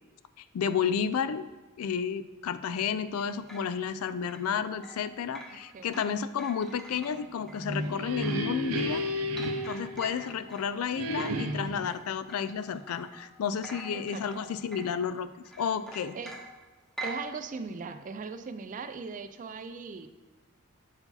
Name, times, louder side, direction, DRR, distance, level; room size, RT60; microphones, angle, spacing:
voice 1, 0.5-1.4 1.8-9.0 9.7-15.3 15.6-16.2, left 7 dB, 80° left, 13 dB, 0.4 m, -31 dB
sound 1, 3.2-13.3 13.6-15.1 15.4-17.3, right 1 dB, ahead, 0.7 m, -46 dB
voice 2, 5.7-6.0 13.9-14.2 16.1-16.3 17.0-20.1, right 4 dB, 35° right, 10 dB, 0.4 m, -39 dB
sound 2, 7.5-10.5 10.9-11.9, equal, 85° right, 0.6 m, -32 dB
6.7 x 4.7 x 4.0 m, 1.2 s
head